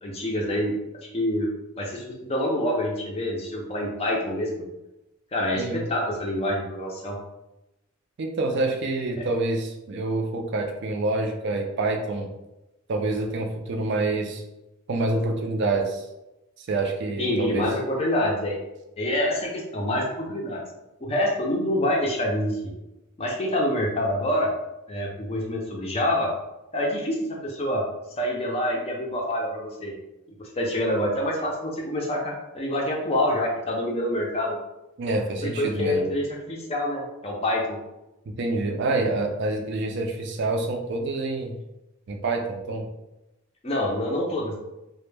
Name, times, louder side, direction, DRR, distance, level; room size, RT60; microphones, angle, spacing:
voice 1, 0.0-0.7 1.1-1.5 1.8-4.6 5.3-7.2 9.2-9.3 17.2-18.6 19.0-20.6 21.0-22.7 23.2-24.5 24.9-26.3 26.7-27.8 28.2-29.9 30.4-34.6 35.4-37.8 43.6-44.6, left 1 dB, 25° left, -1 dB, 0.4 m, -26 dB
voice 2, 8.2-12.3 12.9-14.4 14.9-16.1 16.6-17.7 35.0-36.1 38.4-41.5 42.1-42.9, right 2 dB, 50° right, 3 dB, 0.4 m, -27 dB
2.1 x 2.1 x 3.1 m, 0.96 s
head